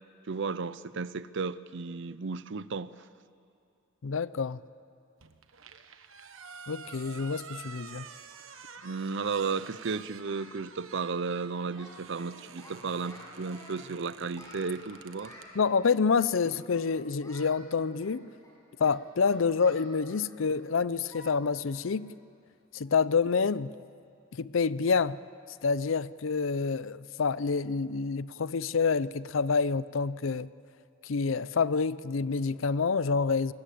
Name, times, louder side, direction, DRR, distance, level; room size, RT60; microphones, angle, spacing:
voice 1, 0.3-3.1 8.8-15.3, right 4 dB, 65° right, 0.6 m, -34 dB
voice 2, 4.0-4.6 6.7-8.1 15.5-18.2 18.8-22.1 22.7-23.7 24.3-25.2 25.6-30.5 31.0-33.5, left 5 dB, 70° left, 0.6 m, -27 dB
sound 1, 5.2-15.5, right 6 dB, 80° right, 1.3 m, -49 dB
Singing, 7.9-9.1 9.4-9.6 9.9-10.0 10.2-10.6 10.9-11.1 11.4-12.3 12.6-13.9 14.3-15.5 16.2-16.9 17.2-17.5 18.0-20.6 21.1-21.3 21.7-21.8 22.3-22.4 22.8-23.1, left 1 dB, 15° left, 6.7 m, -52 dB
27.0 x 20.5 x 8.5 m
head